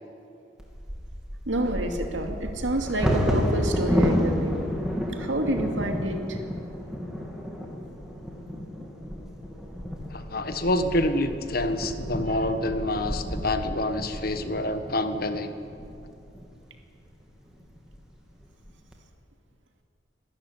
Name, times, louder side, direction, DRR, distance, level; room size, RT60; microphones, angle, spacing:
Bird vocalization bird call bird song / Wind / Thunder, 0.6-16.5 17.1-17.2 17.6-18.0 18.4-18.9, equal, 5° right, 2.7 m, -31 dB
voice 1, 1.5-4.6 5.1-6.4 8.5-8.6 12.3-12.4, right 1 dB, 80° right, 3 dB, 2.6 m, -28 dB
voice 2, 10.1-15.5, left 1 dB, 50° left, 8 dB, 1.4 m, -27 dB
25.0 x 13.0 x 9.8 m, 2.6 s
head